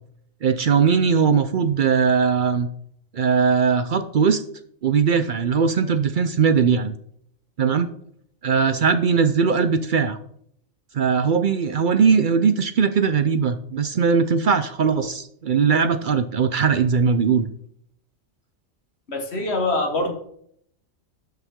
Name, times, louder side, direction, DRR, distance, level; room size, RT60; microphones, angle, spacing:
voice 1, 0.4-2.7 3.1-4.4 4.8-6.9 7.6-7.9 8.4-10.2 10.9-17.5, right 6 dB, 60° right, 11 dB, 0.5 m, -20 dB
voice 2, 19.1-20.1, left 2 dB, 50° left, 4 dB, 1.7 m, -24 dB
13.0 x 5.7 x 3.6 m, 0.69 s
omnidirectional pair, 1.4 m